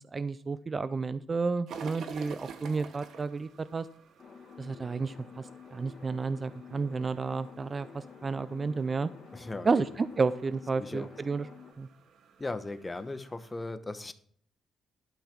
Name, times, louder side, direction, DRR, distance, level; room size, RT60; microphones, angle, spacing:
voice 1, 0.1-3.9 4.6-9.1 9.7-11.5 11.8-11.9, right 4 dB, 35° right, 15 dB, 0.4 m, -31 dB
sound 1, 1.7-13.5, right 6 dB, 70° right, 1.1 m, -50 dB
sound 2, 4.2-11.7, left 6 dB, 50° left, 1.8 m, -50 dB
voice 2, 9.3-9.9 10.8-11.1 12.4-14.1, left 2 dB, 20° left, 11 dB, 1.0 m, -37 dB
12.0 x 5.7 x 5.9 m, 0.62 s
cardioid pair, 90°, 0 cm